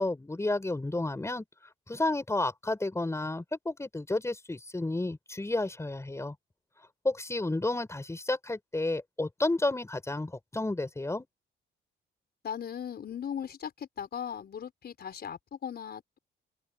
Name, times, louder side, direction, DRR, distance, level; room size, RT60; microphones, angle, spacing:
voice 1, 0.0-1.4 1.9-6.3 7.0-11.3, left 2 dB, 15° left, 4.8 m, -31 dB
voice 2, 12.4-16.2, left 8 dB, 55° left, 5.1 m, -38 dB
cardioid pair, 90°, 20 cm